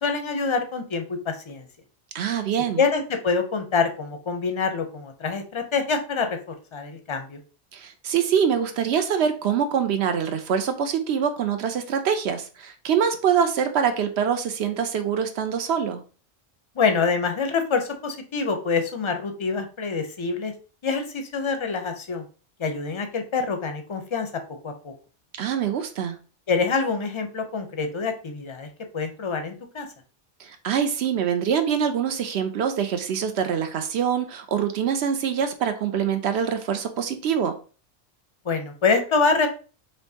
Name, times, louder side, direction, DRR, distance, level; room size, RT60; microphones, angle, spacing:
voice 1, 0.0-1.7 2.8-7.4 16.7-20.5 20.8-22.2 22.6-24.3 24.6-24.9 26.5-28.7 28.9-29.9 38.4-39.5, left 4 dB, 35° left, 6 dB, 0.5 m, -26 dB
voice 2, 2.1-2.8 7.7-16.0 25.4-26.2 30.4-37.6, right 7 dB, 70° right, 7 dB, 0.8 m, -24 dB
4.4 x 3.2 x 2.7 m, 0.36 s
omnidirectional pair, 1.2 m